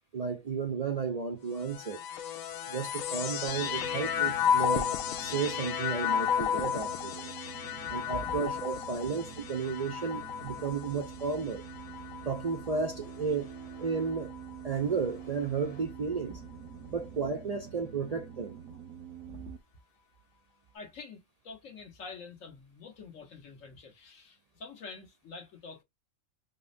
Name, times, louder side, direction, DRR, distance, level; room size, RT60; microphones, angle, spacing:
voice 1, 0.1-2.0 2.7-4.9 5.2-7.3 7.9-11.7 12.2-14.3 14.6-16.3 16.9-18.6, right 5 dB, 70° right, 0.3 m, -33 dB
sound 1, 1.5-13.0 13.8-14.5, left 9 dB, 90° left, 1.1 m, -33 dB
sound 2, 3.5-19.6, right 9 dB, 85° right, 1.2 m, -47 dB
voice 2, 8.0-8.3 18.7-18.8 20.7-25.8, left 4 dB, 70° left, 1.6 m, -47 dB
sound 3, 10.5-17.3, left 1 dB, 40° left, 0.5 m, -53 dB
5.3 x 2.1 x 2.5 m
omnidirectional pair, 1.4 m